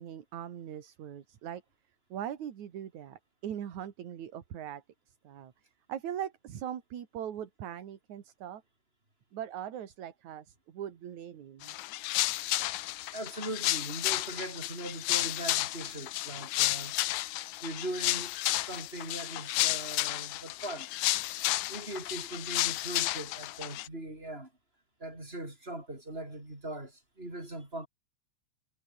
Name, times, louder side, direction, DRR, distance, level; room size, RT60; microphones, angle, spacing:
voice 1, 0.0-1.6 2.1-4.8 5.2-5.5 5.9-8.6 9.3-11.7, right 10 dB, 70° right, 3.3 m, -40 dB
sound 1, 11.6-23.9, left 17 dB, 75° left, 2.0 m, -32 dB
voice 2, 13.1-17.0 17.6-20.9 21.7-24.5 25.0-27.9, right 1 dB, 15° right, 6.1 m, -40 dB
omnidirectional pair, 3.6 m